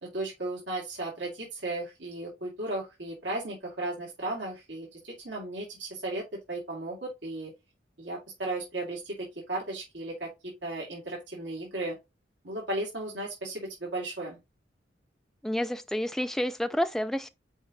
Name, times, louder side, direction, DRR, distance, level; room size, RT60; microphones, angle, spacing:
voice 1, 0.0-7.5 8.0-12.0 12.4-14.4, right 2 dB, 80° right, 2.5 m, -35 dB
voice 2, 15.4-17.3, equal, ahead, 0.3 m, -29 dB
5.2 x 5.0 x 3.9 m
head